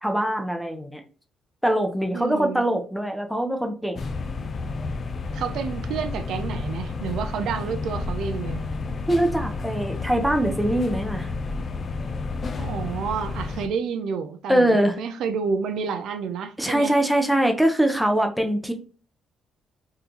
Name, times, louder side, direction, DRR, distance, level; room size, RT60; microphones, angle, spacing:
voice 1, 0.0-1.0 1.6-4.0 9.1-11.3 14.5-15.0 16.6-18.7, right 1 dB, ahead, 0.7 m, -23 dB
voice 2, 2.1-2.6 5.3-8.6 12.6-16.9, right 6 dB, 80° right, 0.4 m, -29 dB
sound 1, 3.9-13.7, left 3 dB, 45° left, 0.5 m, -31 dB
3.7 x 2.3 x 2.8 m
cardioid pair, 90°, 0 cm